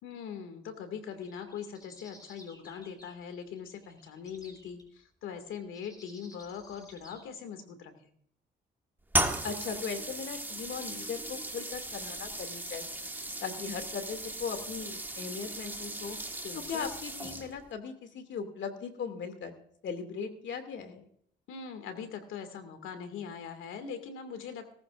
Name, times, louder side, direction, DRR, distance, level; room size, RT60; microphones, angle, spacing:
voice 1, 0.0-8.1 16.4-16.9 21.5-24.7, left 7 dB, 90° left, 8 dB, 2.3 m, -41 dB
sound 1, 1.1-4.8 5.7-7.2, left 1 dB, 20° left, 4.3 m, -56 dB
sound 2, 9.1-17.7, right 1 dB, 10° right, 1.6 m, -36 dB
voice 2, 9.4-13.0 13.4-16.2 16.7-19.6 19.8-21.1, left 6 dB, 65° left, 7 dB, 2.6 m, -38 dB
18.5 x 14.5 x 2.6 m, 0.64 s
cardioid pair, 90°, 20 cm